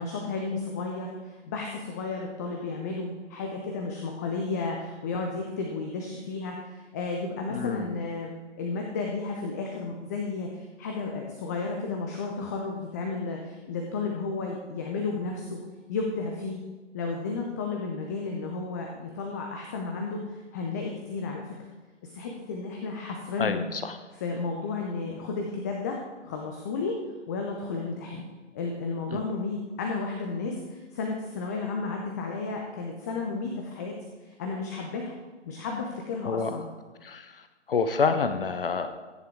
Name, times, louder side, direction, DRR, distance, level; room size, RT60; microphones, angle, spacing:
voice 1, 0.0-8.3 8.6-15.6 15.9-16.6 16.9-21.5 22.0-23.7 24.1-27.0 27.3-28.2 28.5-33.9 34.2-35.1 35.5-36.7, left 4 dB, 15° left, 1 dB, 0.6 m, -33 dB
voice 2, 7.5-7.9 23.4-24.0 29.1-29.2 36.2-36.6 37.0-37.4 37.7-38.9, left 5 dB, 50° left, 9 dB, 0.7 m, -28 dB
14.0 x 9.6 x 3.5 m, 1.3 s
figure-of-eight pair, 130°, 36 cm